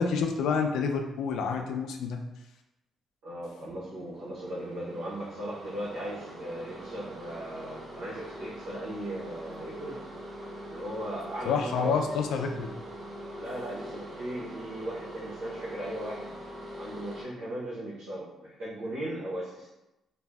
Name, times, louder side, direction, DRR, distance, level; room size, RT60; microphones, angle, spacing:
voice 1, 0.0-2.2 11.4-12.7, left 5 dB, 80° left, 4 dB, 0.3 m, -28 dB
voice 2, 3.2-10.1 10.7-12.2 13.4-16.3 16.8-19.7, right 1 dB, 80° right, -9 dB, 0.9 m, -38 dB
sound 1, 3.6-17.2, right 1 dB, 40° right, 0.6 m, -43 dB
2.6 x 2.1 x 3.3 m, 0.96 s
cardioid pair, 90°, 0 cm